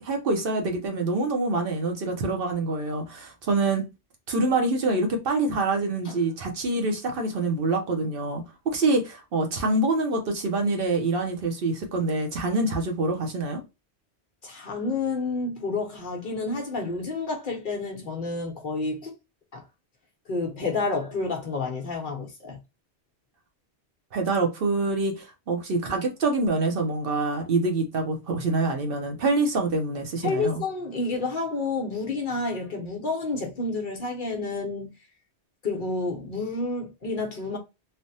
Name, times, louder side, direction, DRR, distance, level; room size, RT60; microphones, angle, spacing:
voice 1, 0.0-3.8 4.3-13.6 24.1-30.5, right 2 dB, 60° right, 0.8 m, -26 dB
voice 2, 14.4-19.1 19.5-19.6 20.3-22.6 30.2-34.9 35.6-37.6, left 3 dB, 50° left, 0.8 m, -29 dB
3.3 x 2.1 x 2.6 m
omnidirectional pair, 1.2 m